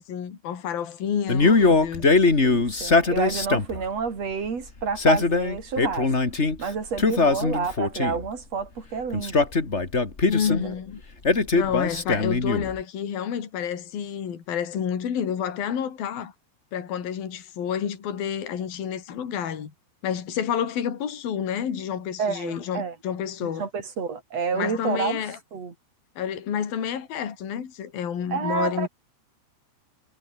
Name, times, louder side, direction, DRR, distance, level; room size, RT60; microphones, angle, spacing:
voice 1, 0.0-2.1 10.3-11.0 11.5-16.3 16.7-19.7 20.0-23.6 24.5-25.4 26.2-28.9, left 8 dB, 55° left, 4.9 m, -29 dB
Male speech man speaking, 1.3-3.8 4.8-6.6 7.0-8.3 9.1-10.6 11.2-12.8, left 3 dB, 25° left, 1.5 m, -21 dB
voice 2, 2.1-6.1 6.6-9.5 10.5-10.7 22.2-23.0 23.4-25.2 25.5-25.7 28.3-28.9, right 5 dB, 35° right, 4.4 m, -29 dB
omnidirectional pair, 5.4 m